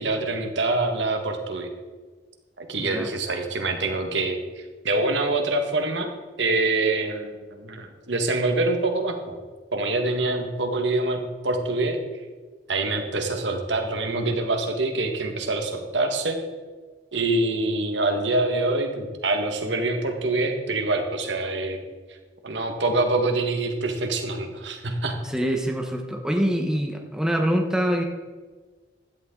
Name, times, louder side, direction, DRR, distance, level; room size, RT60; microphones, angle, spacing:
voice 1, 0.0-1.7 2.6-6.1 6.4-9.4 9.7-12.0 12.7-16.4 17.1-21.8 22.4-25.2, right 2 dB, 70° right, 4 dB, 1.7 m, -25 dB
voice 2, 2.8-3.1 25.2-28.0, equal, 5° right, 2 dB, 1.2 m, -25 dB
16.0 x 11.5 x 3.9 m, 1.4 s
head